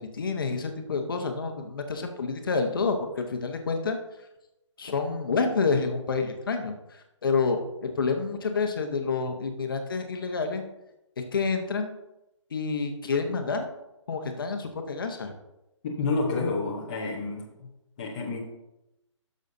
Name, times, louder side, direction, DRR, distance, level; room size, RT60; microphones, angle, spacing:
voice 1, 0.0-4.0 4.8-10.6 11.3-11.9 12.5-13.7 14.1-15.3, left 4 dB, 45° left, 5 dB, 0.9 m, -28 dB
voice 2, 15.8-17.7 18.0-18.4, left 3 dB, 15° left, -4 dB, 0.7 m, -29 dB
12.0 x 6.4 x 2.7 m, 0.93 s
hypercardioid pair, 170°, 16 cm